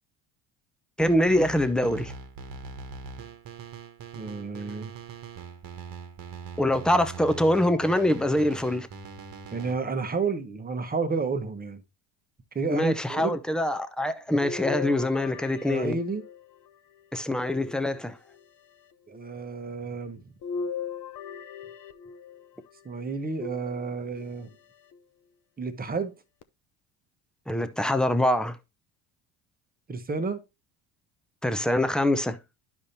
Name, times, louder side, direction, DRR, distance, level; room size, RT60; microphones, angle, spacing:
voice 1, 1.0-2.1 6.6-8.9 12.7-16.0 17.1-18.2 27.5-28.6 31.4-32.4, left 1 dB, ahead, 0.7 m, -24 dB
sound 1, 1.0-9.7, right 5 dB, 45° right, 1.4 m, -42 dB
voice 2, 4.1-4.9 9.5-11.8 12.5-13.3 15.7-16.2 19.1-20.3 22.8-24.5 25.6-26.1 29.9-30.4, right 4 dB, 20° right, 1.1 m, -31 dB
sound 2, 14.4-16.7 17.4-18.4 20.4-22.5 23.4-24.3 24.9-25.0 26.4-26.5, left 6 dB, 40° left, 0.7 m, -37 dB
11.5 x 5.0 x 2.8 m
supercardioid pair, 85°, 49 cm